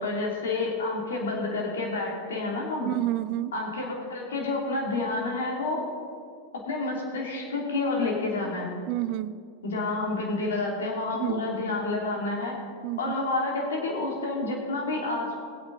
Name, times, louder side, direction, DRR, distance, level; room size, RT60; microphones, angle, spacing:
voice 1, 0.0-2.9 3.5-5.8 6.7-8.7 9.6-12.5 13.0-15.4, left 3 dB, 70° left, -2 dB, 2.9 m, -29 dB
voice 2, 2.8-3.6 8.9-9.4 11.1-11.6 12.8-13.1, right 15 dB, 45° right, 17 dB, 0.5 m, -30 dB
20.5 x 8.4 x 4.1 m, 2.2 s
figure-of-eight pair, 95°, 0 cm